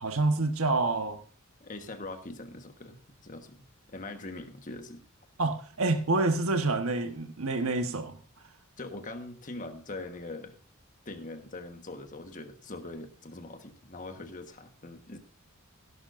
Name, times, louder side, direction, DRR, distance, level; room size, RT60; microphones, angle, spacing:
voice 1, 0.0-1.2 5.4-8.2, right 2 dB, 80° right, 1.3 m, -27 dB
voice 2, 1.6-3.6 3.9-5.0 8.8-10.5 11.0-15.2, left 2 dB, 40° left, 1.4 m, -42 dB
16.5 x 11.5 x 2.6 m
head